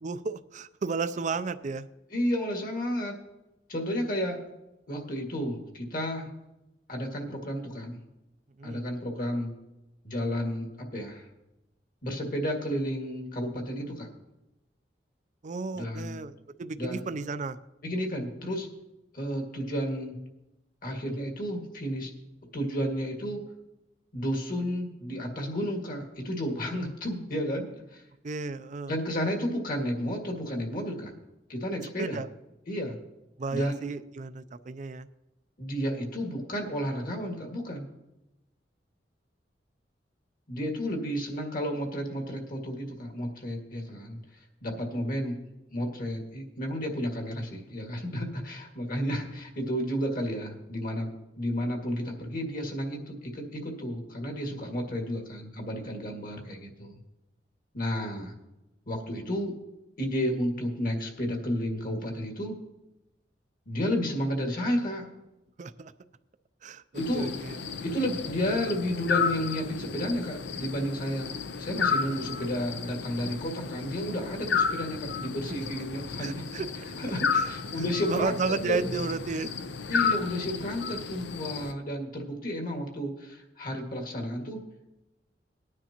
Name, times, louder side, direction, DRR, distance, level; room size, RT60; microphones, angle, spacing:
voice 1, 0.0-1.9 8.6-8.8 15.4-17.6 28.2-28.9 32.0-32.3 33.4-35.1 65.6-65.9 66.6-67.6 75.5-75.6 76.2-76.7 77.3-77.5 78.1-79.5, right 4 dB, 45° right, 12 dB, 0.4 m, -33 dB
voice 2, 2.1-3.2 3.7-4.4 4.9-6.3 6.9-8.0 8.6-9.5 10.0-11.3 12.0-14.1 15.7-16.1 16.8-17.1 17.8-18.7 19.1-20.2 20.8-22.1 22.5-23.4 24.1-28.0 28.9-31.1 31.5-32.2 32.7-33.0 33.5-33.9 35.6-37.8 40.5-44.2 44.6-45.4 45.7-51.1 51.4-57.0 57.7-58.3 58.9-59.5 60.0-62.5 63.7-65.1 67.0-67.3 67.8-71.3 71.6-76.5 77.0-78.3 78.6-78.9 79.9-84.6, equal, 50° left, 2 dB, 2.1 m, -32 dB
sound 1, 67.0-81.7, left 5 dB, 75° left, 0.6 m, -32 dB
19.0 x 9.6 x 2.9 m, 0.96 s
head